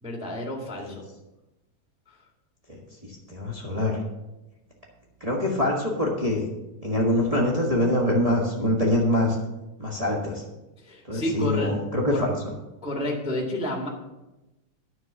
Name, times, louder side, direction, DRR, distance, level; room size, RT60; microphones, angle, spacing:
voice 1, 0.0-1.0 2.1-2.2 10.8-11.7 12.1-12.3 12.8-13.9, left 1 dB, 5° right, 0 dB, 1.0 m, -30 dB
voice 2, 2.7-4.0 5.2-6.4 6.8-9.4 9.8-10.4 11.1-12.3, left 1 dB, 45° right, -3 dB, 0.4 m, -24 dB
9.7 x 6.6 x 6.7 m, 1.0 s
omnidirectional pair, 3.4 m